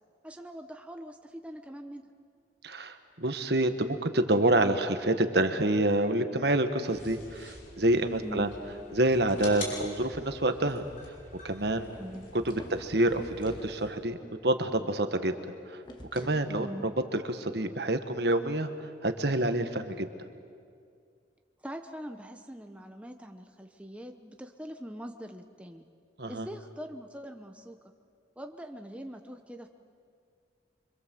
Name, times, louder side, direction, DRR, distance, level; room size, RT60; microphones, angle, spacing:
voice 1, 0.2-2.0 8.2-8.5 12.0-12.3 16.6-16.8 21.6-25.8 26.3-27.8 28.4-29.7, equal, 5° right, 5 dB, 0.9 m, -42 dB
voice 2, 2.6-8.5 8.9-10.8 11.4-11.9 12.3-14.2 14.4-15.3 15.7-15.8 16.1-18.7 19.0-20.1 26.2-26.5, right 1 dB, 55° right, 8 dB, 1.5 m, -27 dB
sound 1, 6.9-13.9, left 2 dB, 45° left, 6.5 m, -46 dB
sound 2, 12.1-13.7 15.8-16.5, equal, 25° left, 1.9 m, -47 dB
26.5 x 24.5 x 7.7 m, 2.2 s
head